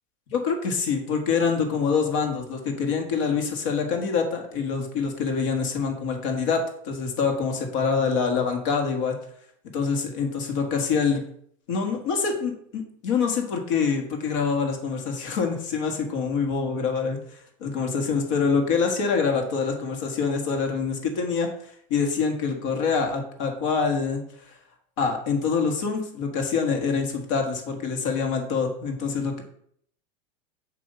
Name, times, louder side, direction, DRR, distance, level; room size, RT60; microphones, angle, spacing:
voice 1, 0.3-9.2 9.7-11.2 11.7-21.5 21.9-24.2 25.0-29.4, left 5 dB, 70° left, 3 dB, 1.5 m, -25 dB
7.7 x 2.8 x 5.4 m, 0.66 s
supercardioid pair, 155°, 15 cm